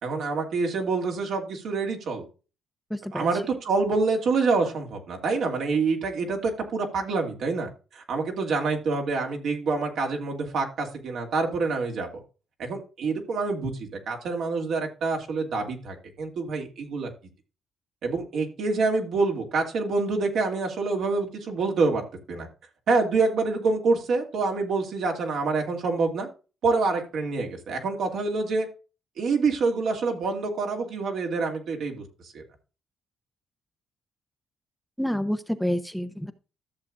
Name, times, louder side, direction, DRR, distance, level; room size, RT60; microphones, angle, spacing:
voice 1, 0.0-2.2 3.1-12.2 12.6-17.1 18.0-22.5 22.9-26.3 26.6-28.7 29.2-32.4, right 4 dB, 70° right, 2 dB, 2.4 m, -26 dB
voice 2, 2.9-3.3 35.0-36.3, equal, ahead, 8 dB, 0.8 m, -28 dB
13.5 x 7.0 x 2.5 m, 0.33 s
cardioid pair, 90°, 0 cm